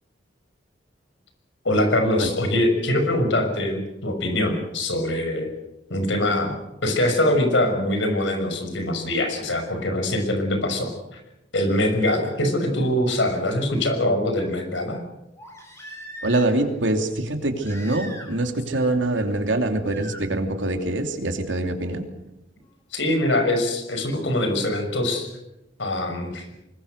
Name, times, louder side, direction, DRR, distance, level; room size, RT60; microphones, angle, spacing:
voice 1, 1.6-5.5 5.9-6.5 6.8-11.2 11.5-15.0 22.9-25.3 25.8-26.5, left 1 dB, 75° left, 6 dB, 6.1 m, -23 dB
Crying sobbing, 12.6-12.7 15.4-16.7 17.6-18.5 18.7-19.3 19.9-20.2 21.8-21.9, equal, 15° left, 7.2 m, -41 dB
voice 2, 16.2-22.1, right 2 dB, 80° right, 6 dB, 2.9 m, -24 dB
25.0 x 21.5 x 6.7 m, 0.92 s
head